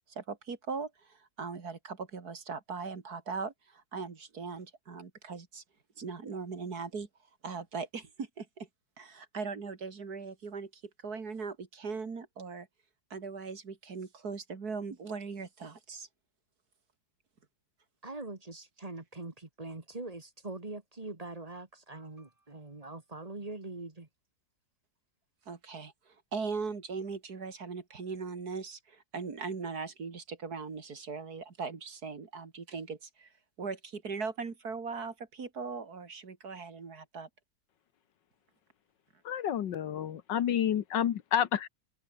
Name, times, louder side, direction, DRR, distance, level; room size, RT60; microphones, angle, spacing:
voice 1, 0.1-5.6 6.0-7.1 7.4-8.7 9.0-12.7 13.1-16.1 25.5-33.3 33.6-37.3, right 5 dB, 50° right, 2.7 m, -39 dB
voice 2, 18.0-24.1, right 2 dB, 20° right, 1.8 m, -43 dB
voice 3, 39.2-41.7, left 9 dB, 70° left, 1.7 m, -29 dB
omnidirectional pair, 2.1 m